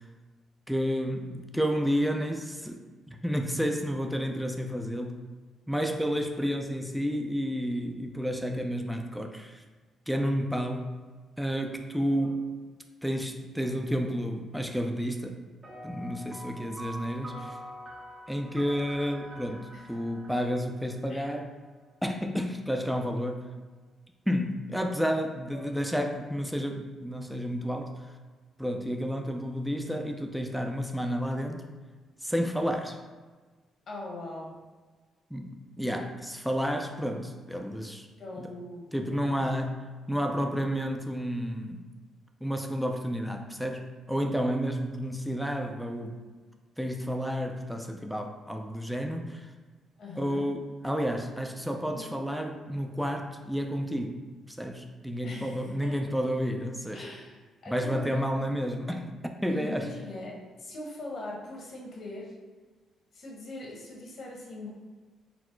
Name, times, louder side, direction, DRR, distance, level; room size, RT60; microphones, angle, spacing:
voice 1, 0.7-5.2 5.7-9.6 10.1-10.9 11.4-12.4 13.0-15.4 15.8-17.6 18.3-21.5 22.0-23.5 24.3-28.1 28.6-31.7 32.2-33.0 35.3-38.1 38.9-41.9 42.4-46.2 46.8-49.5 50.2-54.2 54.5-57.1 57.7-59.9, equal, ahead, 3 dB, 0.4 m, -31 dB
sound 1, 15.6-21.4, equal, 30° right, 1.0 m, -45 dB
voice 2, 33.9-34.6 38.2-38.8 39.2-39.4 50.0-50.4 51.9-52.1 55.2-56.0 56.9-58.2 59.5-62.3 63.1-64.7, left 2 dB, 60° left, -2 dB, 1.2 m, -41 dB
4.2 x 2.0 x 4.5 m, 1.4 s
cardioid pair, 90°, 0 cm